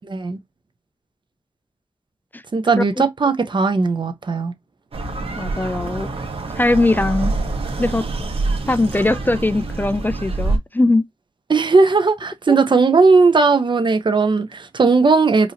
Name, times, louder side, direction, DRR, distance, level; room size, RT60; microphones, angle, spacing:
voice 1, 0.0-0.4 2.5-4.5 11.5-15.5, right 4 dB, 50° right, 0.9 m, -17 dB
sound 1, 4.9-10.6, right 3 dB, 75° right, 1.3 m, -25 dB
voice 2, 5.4-6.1 6.6-7.3 7.8-8.0 8.7-11.0 12.5-12.6, left 2 dB, 20° left, 0.4 m, -20 dB
4.7 x 2.8 x 2.8 m
cardioid pair, 65°, 10 cm